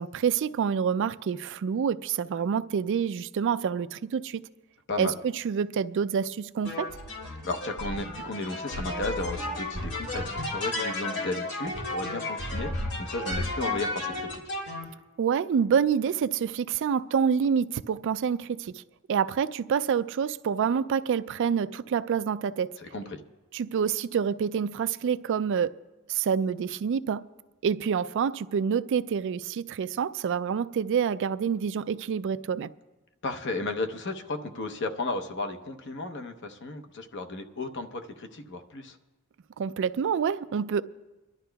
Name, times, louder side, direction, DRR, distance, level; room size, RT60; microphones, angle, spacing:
voice 1, 0.0-4.5 5.0-6.9 15.2-18.8 19.1-22.8 23.5-25.7 26.1-27.2 27.6-32.7 39.6-40.8, right 7 dB, 55° right, 0.3 m, -27 dB
sound 1, 6.6-14.8, left 2 dB, 85° left, 3.2 m, -33 dB
voice 2, 7.4-14.4 22.8-23.2 33.2-39.0, left 2 dB, 55° left, 0.8 m, -34 dB
27.5 x 12.0 x 2.3 m
head